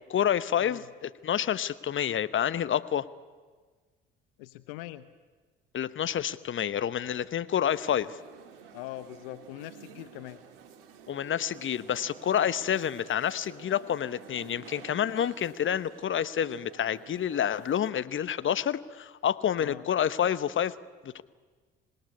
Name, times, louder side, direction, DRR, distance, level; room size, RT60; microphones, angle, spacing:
voice 1, 0.1-3.1 5.7-8.2 11.1-20.7 21.0-21.2, left 9 dB, 45° left, 15 dB, 1.1 m, -28 dB
voice 2, 4.4-5.1 8.7-10.4 19.6-19.9, left 16 dB, 75° left, 13 dB, 0.9 m, -42 dB
sound 1, 7.7-17.9, right 8 dB, 75° right, 2.3 m, -51 dB
26.5 x 19.0 x 9.7 m, 1.4 s
hypercardioid pair, 55°, 29 cm